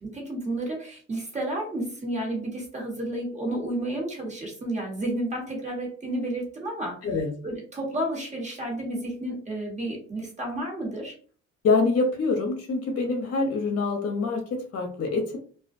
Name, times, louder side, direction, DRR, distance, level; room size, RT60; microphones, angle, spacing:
voice 1, 0.0-7.0 7.4-11.1, right 1 dB, 25° right, -1 dB, 1.2 m, -31 dB
voice 2, 11.6-15.4, left 3 dB, 55° left, 3 dB, 0.7 m, -25 dB
2.3 x 2.1 x 2.5 m, 0.43 s
cardioid pair, 90°, 30 cm